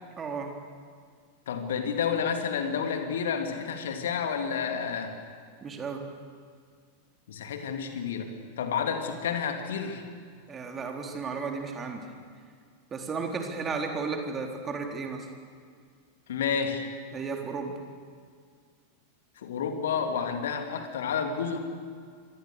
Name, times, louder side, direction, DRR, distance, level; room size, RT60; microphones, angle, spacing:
voice 1, 0.2-0.5 5.6-6.0 10.5-12.1 12.9-15.3 17.1-17.8, right 4 dB, 20° right, 3 dB, 3.8 m, -34 dB
voice 2, 1.5-5.1 7.3-10.0 16.3-16.8 19.4-21.6, left 6 dB, 60° left, 5 dB, 3.0 m, -30 dB
26.5 x 24.5 x 6.8 m, 2.1 s
figure-of-eight pair, 90°, 0 cm